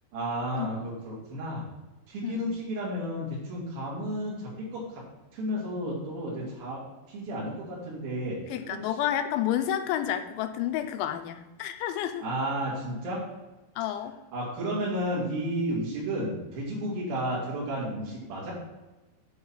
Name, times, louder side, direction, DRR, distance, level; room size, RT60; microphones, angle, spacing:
voice 1, 0.1-1.6 2.1-5.0 5.3-8.4 8.7-8.8 12.2-13.2 14.3-18.5, equal, 55° right, -7 dB, 4.0 m, -32 dB
voice 2, 8.5-12.3 13.8-14.2, left 11 dB, 85° left, 8 dB, 2.9 m, -30 dB
9.5 x 4.4 x 7.3 m, 1.1 s
omnidirectional pair, 5.4 m